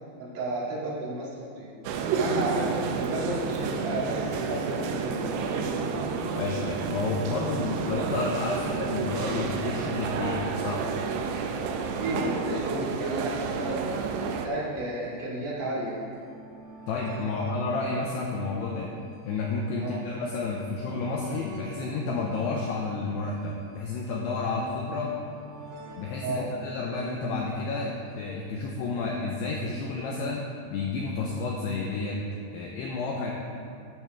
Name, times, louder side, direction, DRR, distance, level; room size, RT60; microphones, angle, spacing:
voice 1, 0.2-1.7 2.1-5.8 11.8-13.8 14.3-16.0 17.3-17.5 19.8-20.0 26.2-26.5, right 1 dB, 50° right, -6 dB, 2.9 m, -32 dB
sound 1, 1.8-14.5, right 5 dB, 85° right, 2.4 m, -30 dB
voice 2, 6.3-10.9 16.9-18.9 19.3-25.2 26.0-30.4 30.7-32.2 32.5-33.3, left 3 dB, 85° left, -1 dB, 2.4 m, -31 dB
sound 2, 13.8-29.1 30.0-30.1 30.3-30.4, right 2 dB, 70° right, 3.8 m, -50 dB
12.5 x 10.5 x 3.5 m, 2.5 s
omnidirectional pair, 5.7 m